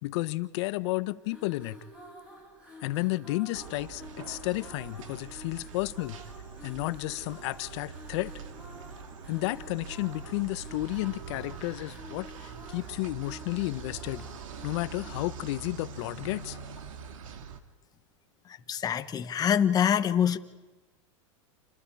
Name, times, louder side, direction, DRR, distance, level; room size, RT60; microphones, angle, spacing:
voice 1, 0.0-1.8 2.8-6.2 6.6-8.3 9.3-14.2 14.6-16.6, left 20 dB, 60° left, 14 dB, 1.1 m, -32 dB
sound 1, 1.2-17.6, equal, 5° right, 7.6 m, -50 dB
sound 2, 3.5-17.6, right 6 dB, 85° right, 2.4 m, -44 dB
voice 2, 18.5-20.4, left 8 dB, 25° left, 8 dB, 1.4 m, -25 dB
29.0 x 26.5 x 4.9 m, 1.2 s
supercardioid pair, 135°, 16 cm